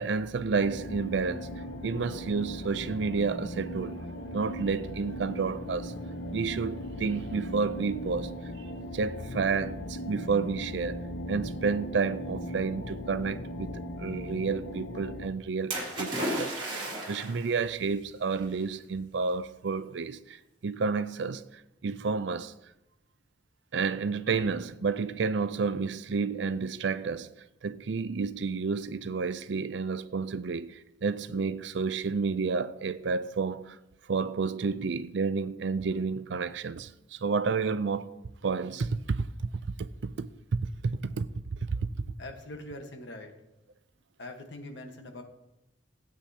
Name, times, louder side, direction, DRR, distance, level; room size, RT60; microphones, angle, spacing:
voice 1, 0.0-1.5 1.8-4.0 4.3-5.9 6.3-8.3 8.9-20.4 20.6-21.4 21.8-22.5 23.7-27.3 27.6-33.8 34.1-38.1 38.4-39.3 39.8-41.3 41.7-41.9, right 4 dB, 65° right, 0.4 m, -30 dB
sound 1, 0.6-15.3, equal, 80° left, 0.9 m, -38 dB
Splash splatter, 15.7-17.5 18.4-18.5, right 1 dB, 30° right, 2.8 m, -33 dB
voice 2, 42.2-43.3 44.2-45.2, left 1 dB, 65° left, 1.4 m, -42 dB
16.0 x 8.6 x 2.9 m
head